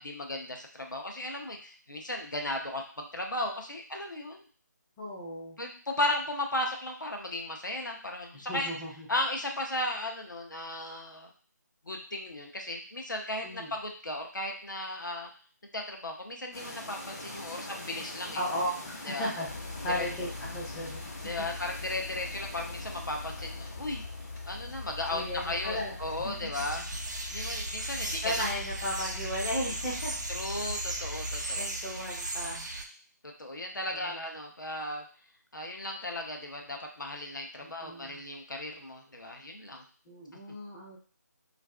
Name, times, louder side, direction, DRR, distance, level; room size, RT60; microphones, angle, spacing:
voice 1, 0.0-4.4 5.6-8.7 9.1-11.3 11.8-15.3 15.7-18.4 19.0-19.3 19.9-20.1 21.2-24.0 24.5-26.9 27.3-28.5 30.3-31.6 31.9-32.0 33.2-35.0 35.5-39.8, left 1 dB, 90° left, 2 dB, 0.6 m, -35 dB
voice 2, 5.0-5.6 8.3-9.1 13.4-13.7 18.3-19.5 19.8-21.1 21.4-21.5 25.1-26.3 28.0-30.2 30.5-30.7 31.6-32.7 33.9-34.2 37.6-38.2 40.1-41.0, equal, 10° left, -6 dB, 0.4 m, -36 dB
sound 1, 16.5-26.5, left 1 dB, 50° left, 0.8 m, -45 dB
sound 2, 19.5-31.5, left 3 dB, 75° left, 1.1 m, -42 dB
sound 3, 26.5-32.9, right 2 dB, 70° right, 0.5 m, -36 dB
2.4 x 2.4 x 2.2 m, 0.42 s
figure-of-eight pair, 155°, 10 cm